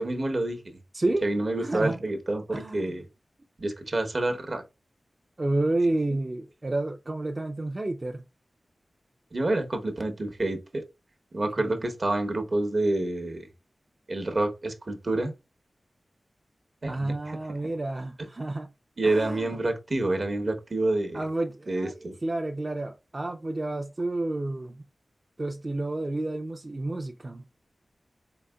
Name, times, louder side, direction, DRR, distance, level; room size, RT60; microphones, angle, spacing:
voice 1, 0.0-0.8 1.2-3.0 3.6-4.6 9.3-10.8 11.3-13.5 14.1-15.3 16.8-17.4 19.0-21.2 21.7-22.2, right 2 dB, 60° right, 0.9 m, -28 dB
voice 2, 0.9-1.3 1.6-2.0 2.5-2.9 5.4-8.2 11.6-11.8 16.9-18.7 19.0-19.6 21.1-24.8 25.4-27.4, right 2 dB, 40° right, 0.5 m, -30 dB
4.0 x 3.5 x 2.2 m
cardioid pair, 45°, 0 cm